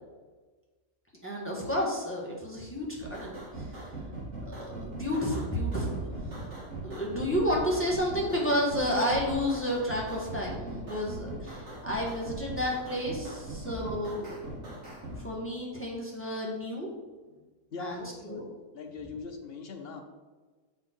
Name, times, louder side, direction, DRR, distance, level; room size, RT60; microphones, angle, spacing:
voice 1, 1.2-3.7 4.4-6.5 6.8-14.5 15.1-16.9 17.8-18.4, equal, 10° left, -3 dB, 1.2 m, -31 dB
sound 1, 3.0-15.2, right 2 dB, 45° right, 2.4 m, -40 dB
voice 2, 17.7-18.4 18.7-20.0, left 4 dB, 50° left, 4 dB, 0.7 m, -41 dB
6.6 x 5.7 x 4.4 m, 1.3 s
omnidirectional pair, 1.8 m